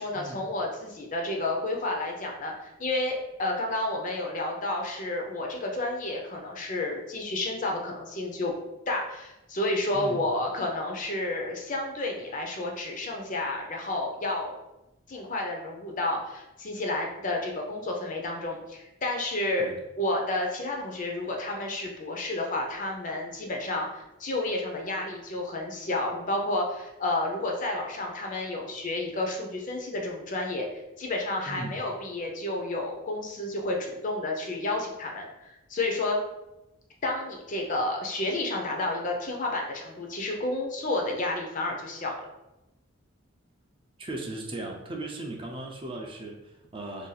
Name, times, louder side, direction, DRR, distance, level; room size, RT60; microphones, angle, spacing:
voice 1, 0.0-8.5 8.9-14.6 15.1-19.7 20.0-36.2 37.0-42.3, left 2 dB, 40° left, 1 dB, 0.5 m, -31 dB
voice 2, 31.5-31.8 44.0-47.1, right 2 dB, 25° right, 0 dB, 0.4 m, -37 dB
2.6 x 2.3 x 3.9 m, 0.96 s
head